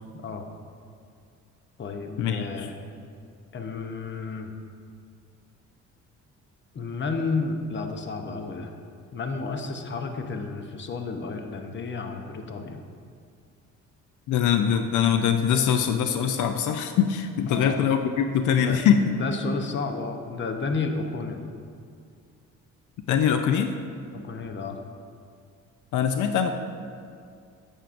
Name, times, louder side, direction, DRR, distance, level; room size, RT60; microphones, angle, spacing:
voice 1, 0.1-0.4 1.8-2.7 3.5-4.5 6.7-8.7 9.1-12.8 17.5-17.8 18.5-18.8 19.1-21.5 24.2-24.8, left 4 dB, 40° left, 5 dB, 0.8 m, -31 dB
voice 2, 2.2-2.7 14.3-19.1 23.1-23.7 25.9-26.5, left 8 dB, 80° left, 7 dB, 0.5 m, -23 dB
9.0 x 8.2 x 2.5 m, 2.2 s
cardioid pair, 90°, 30 cm